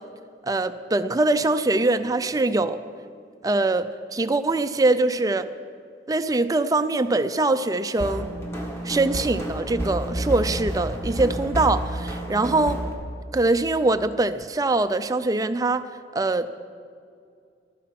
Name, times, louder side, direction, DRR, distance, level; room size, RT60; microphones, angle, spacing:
voice 1, 0.4-2.8 3.4-5.5 6.1-8.3 8.8-12.8 13.3-15.8 16.1-16.5, right 2 dB, 20° right, 11 dB, 0.4 m, -23 dB
sound 1, 8.0-12.9, right 1 dB, 15° left, 1.7 m, -30 dB
15.0 x 12.5 x 5.9 m, 2.3 s
head